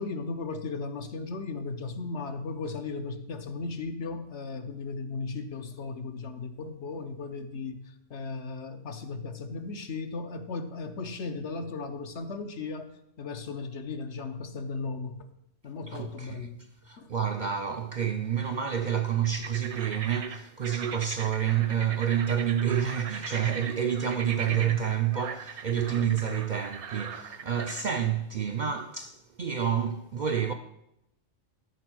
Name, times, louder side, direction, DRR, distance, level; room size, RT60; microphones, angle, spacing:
voice 1, 0.0-7.8 8.1-12.9 13.2-15.3 15.6-16.6 17.0-17.1 24.5-24.7 26.0-26.1, left 4 dB, 70° left, 1.2 m, -36 dB
voice 2, 15.9-16.5 16.9-30.5, right 9 dB, 55° right, 0.5 m, -29 dB
sound 1, 19.2-27.9, right 6 dB, 70° right, 1.1 m, -40 dB
12.5 x 5.1 x 6.2 m
omnidirectional pair, 1.2 m